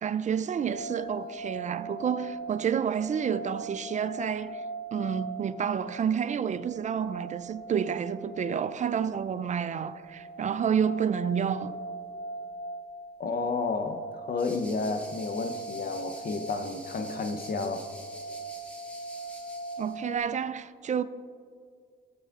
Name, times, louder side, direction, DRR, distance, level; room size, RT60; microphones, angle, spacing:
voice 1, 0.0-4.6 4.9-11.8 19.8-21.0, right 7 dB, 35° right, 0.4 m, -29 dB
sound 1, 0.5-20.2, right 2 dB, 55° right, 0.9 m, -41 dB
voice 2, 13.2-17.9, left 4 dB, 50° left, 0.7 m, -31 dB
sound 2, 14.4-20.0, equal, 5° left, 1.7 m, -48 dB
16.0 x 8.3 x 2.5 m
cardioid pair, 90°, 20 cm